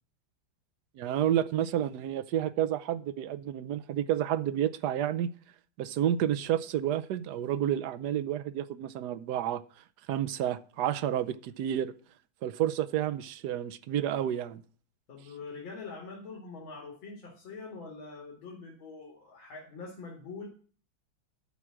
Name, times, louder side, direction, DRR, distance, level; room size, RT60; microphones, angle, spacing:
voice 1, 1.0-5.3 5.8-9.6 10.1-11.9 12.4-14.6, right 11 dB, 70° right, 1.0 m, -30 dB
voice 2, 15.1-20.5, left 4 dB, 80° left, 3.0 m, -44 dB
12.5 x 4.9 x 7.6 m
omnidirectional pair, 2.2 m